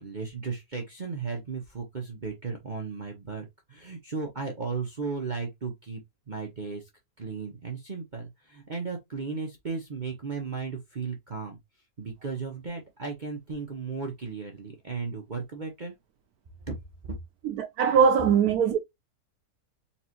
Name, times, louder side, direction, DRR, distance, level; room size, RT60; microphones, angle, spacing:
voice 1, 0.0-6.0 6.3-6.8 7.2-11.6 12.0-15.9 16.7-16.8, right 4 dB, 35° right, 0.9 m, -35 dB
voice 2, 17.4-18.8, right 7 dB, 75° right, 1.1 m, -21 dB
4.4 x 3.2 x 2.9 m
omnidirectional pair, 1.6 m